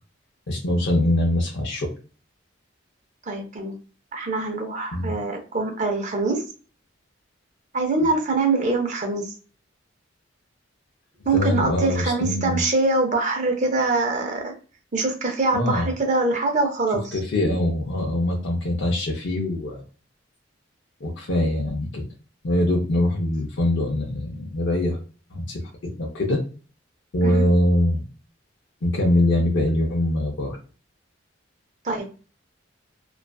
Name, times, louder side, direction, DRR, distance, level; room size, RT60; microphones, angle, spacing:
voice 1, 0.5-1.9 4.9-5.1 11.3-12.6 15.5-15.9 17.1-19.8 21.0-22.1 22.4-25.0 25.3-25.6 26.0-26.4 27.1-28.0 28.8-30.6, left 1 dB, 70° left, -1 dB, 0.5 m, -23 dB
voice 2, 3.3-3.8 4.1-6.4 7.7-9.3 11.3-14.5 14.9-17.1 27.2-27.4 31.8-32.0, right 3 dB, 40° right, 3 dB, 0.6 m, -24 dB
2.4 x 2.4 x 2.2 m, 0.37 s
head